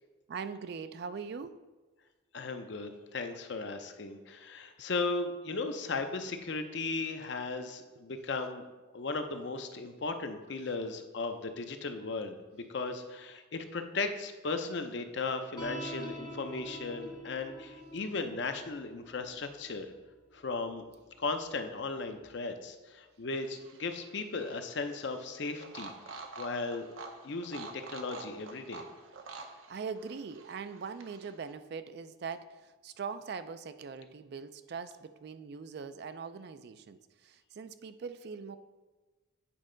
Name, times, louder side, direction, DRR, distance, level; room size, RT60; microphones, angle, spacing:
voice 1, 0.3-1.6 29.4-38.6, right 5 dB, 50° right, 12 dB, 0.3 m, -42 dB
voice 2, 2.3-8.7 8.9-19.9 20.3-20.8 21.2-26.9 27.2-28.8, left 3 dB, 60° left, 7 dB, 0.6 m, -36 dB
sound 1, 15.6-22.2, equal, 20° left, 0.7 m, -47 dB
sound 2, 23.4-31.5, right 3 dB, 80° right, 0.8 m, -48 dB
8.5 x 5.3 x 3.8 m, 1.3 s
head